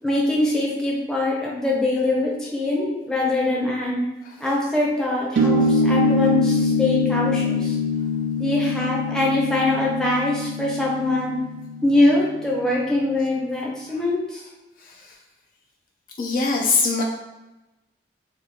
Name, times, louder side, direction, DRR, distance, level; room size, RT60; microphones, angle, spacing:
voice 1, 0.0-4.0 4.4-7.8 8.4-11.3 11.8-14.4, left 2 dB, 5° left, -4 dB, 0.6 m, -23 dB
sound 1, 5.4-12.3, left 2 dB, 85° right, 0.4 m, -23 dB
voice 2, 14.8-15.2 16.2-17.0, left 4 dB, 50° left, 1 dB, 0.3 m, -23 dB
2.9 x 2.3 x 3.4 m, 1.0 s
head